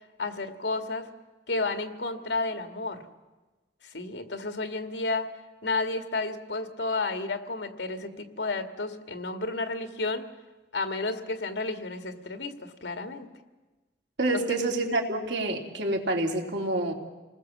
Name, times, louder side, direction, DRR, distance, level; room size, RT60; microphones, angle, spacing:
voice 1, 0.2-1.1 1.5-3.0 3.8-5.3 5.6-10.3 10.7-13.3 14.5-14.6, left 3 dB, 85° left, 7 dB, 2.0 m, -31 dB
voice 2, 14.2-16.9, right 2 dB, 75° right, 1 dB, 3.2 m, -27 dB
28.5 x 20.0 x 7.4 m, 1.2 s
head